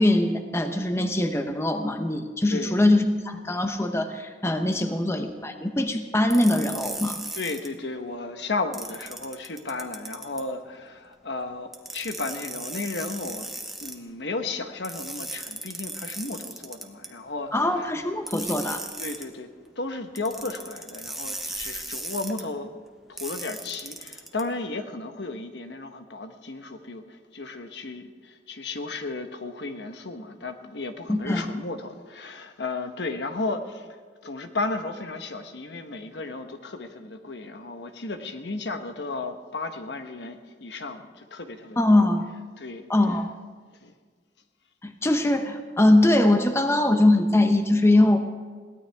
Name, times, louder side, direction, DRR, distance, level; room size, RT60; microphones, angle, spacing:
voice 1, 0.0-7.2 17.5-18.8 31.1-31.5 41.8-42.3 42.9-43.3 44.8-48.2, left 1 dB, 15° left, 6 dB, 0.8 m, -22 dB
sound 1, 6.3-7.7 8.7-10.4 11.7-14.0 14.8-17.1 18.3-19.3 20.2-22.4 23.2-24.4, right 1 dB, ahead, 1.2 m, -36 dB
voice 2, 7.3-13.5 13.8-17.9 19.0-22.8 23.1-42.0 42.6-42.8 43.8-43.9 47.9-48.2, left 3 dB, 65° left, 7 dB, 1.1 m, -34 dB
22.0 x 17.0 x 3.5 m, 1.5 s
head